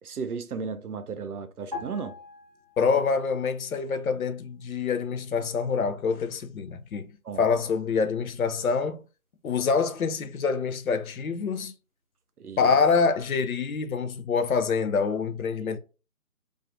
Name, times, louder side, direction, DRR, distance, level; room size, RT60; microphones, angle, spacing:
voice 1, 0.0-2.1 7.2-7.4 12.4-12.8 15.7-15.8, right 5 dB, 85° right, 0.6 m, -35 dB
sound 1, 1.7-3.3 3.6-3.8, left 3 dB, 25° right, 0.6 m, -41 dB
voice 2, 2.8-7.1 7.4-9.0 9.4-11.7 12.6-15.8, left 5 dB, 70° left, 0.5 m, -26 dB
2.5 x 2.4 x 2.5 m
figure-of-eight pair, 160°, 44 cm